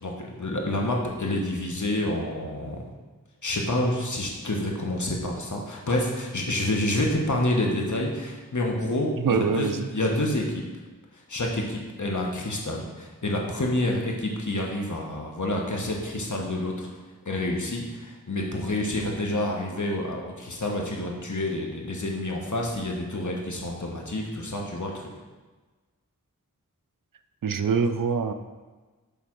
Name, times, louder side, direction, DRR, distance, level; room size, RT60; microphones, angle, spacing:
voice 1, 0.0-2.8 3.4-10.7 11.3-16.9 17.2-25.1, left 1 dB, 60° left, 0 dB, 1.3 m, -28 dB
voice 2, 9.2-9.9 27.4-28.3, right 5 dB, 75° right, 9 dB, 0.5 m, -24 dB
7.2 x 3.4 x 6.0 m, 1.3 s
wide cardioid pair, 45°, 33 cm